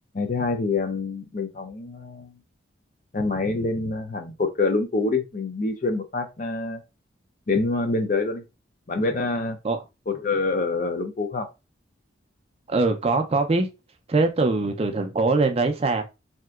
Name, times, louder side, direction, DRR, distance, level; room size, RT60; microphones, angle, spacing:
voice 1, 0.1-2.3 3.1-6.8 7.5-8.4 8.9-9.6 10.1-11.5, left 3 dB, 40° left, 0.5 m, -26 dB
voice 2, 12.7-13.7 14.1-16.0, right 3 dB, 30° right, 0.4 m, -22 dB
3.3 x 2.8 x 2.3 m
head